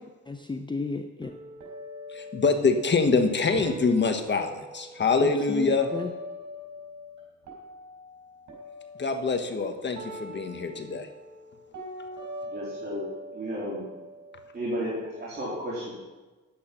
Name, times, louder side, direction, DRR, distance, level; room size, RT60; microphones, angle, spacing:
voice 1, 0.0-1.3 5.2-6.1, left 3 dB, 15° left, 6 dB, 0.7 m, -34 dB
sound 1, 1.2-7.2 7.4-15.2, equal, 70° right, 4.5 m, -43 dB
voice 2, 2.1-5.9 9.0-11.1, left 4 dB, 35° left, 6 dB, 1.4 m, -25 dB
voice 3, 12.4-13.1 13.3-13.9 14.5-15.9, equal, 35° right, -6 dB, 3.6 m, -33 dB
10.5 x 8.9 x 5.9 m, 1.2 s
cardioid pair, 90°, 30 cm